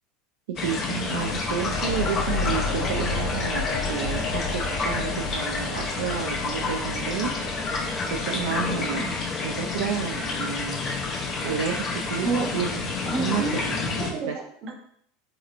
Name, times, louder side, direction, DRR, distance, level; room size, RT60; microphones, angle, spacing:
voice 1, 0.5-7.4 8.1-9.2 9.4-10.8 11.4-12.3 12.5-14.4, right 7 dB, 80° right, 1 dB, 0.3 m, -31 dB
sound 1, 0.6-14.1, left 4 dB, 40° left, 0.6 m, -29 dB
sound 2, 0.7-11.8, left 3 dB, 75° left, 0.8 m, -34 dB
voice 2, 13.1-13.6 13.9-14.8, right 4 dB, 45° right, 1 dB, 0.7 m, -29 dB
3.1 x 2.9 x 2.4 m, 0.64 s
hypercardioid pair, 100°, 0 cm